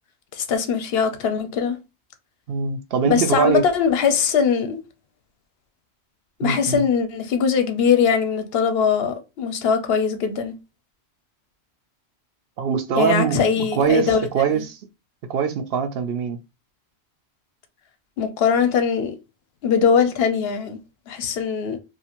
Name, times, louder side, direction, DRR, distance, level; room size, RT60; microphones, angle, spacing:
voice 1, 0.3-1.8 3.0-4.8 6.4-10.5 12.9-14.3 18.2-19.2 19.6-20.8 21.1-21.8, left 6 dB, 70° left, 0.8 m, -21 dB
voice 2, 2.5-3.6 6.4-6.9 12.6-14.8 15.3-16.4, right 7 dB, 70° right, 0.7 m, -22 dB
2.6 x 2.4 x 2.9 m
omnidirectional pair, 1.1 m